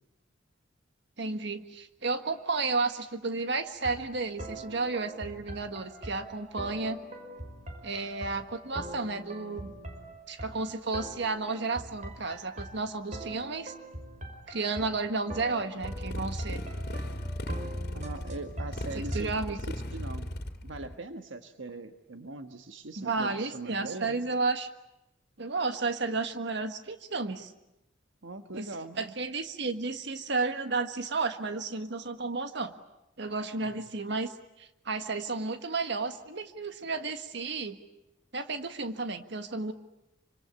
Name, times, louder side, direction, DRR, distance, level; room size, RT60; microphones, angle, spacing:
voice 1, 1.2-7.0 7.8-9.7 10.3-13.7 14.5-16.6 18.9-19.6 23.0-24.7 25.4-27.5 28.5-28.7 29.0-32.7 33.2-34.3 34.6-37.8 38.3-39.7, right 3 dB, 65° right, 8 dB, 1.6 m, -32 dB
sound 1, 3.7-19.2, right 1 dB, 40° right, 5.6 m, -43 dB
Motorcycle, 15.8-20.9, equal, 55° left, 2.6 m, -36 dB
voice 2, 17.9-20.3 20.6-24.2 28.2-29.1 33.6-33.9, right 2 dB, 85° right, 7 dB, 1.4 m, -41 dB
27.0 x 26.0 x 8.5 m, 0.91 s
head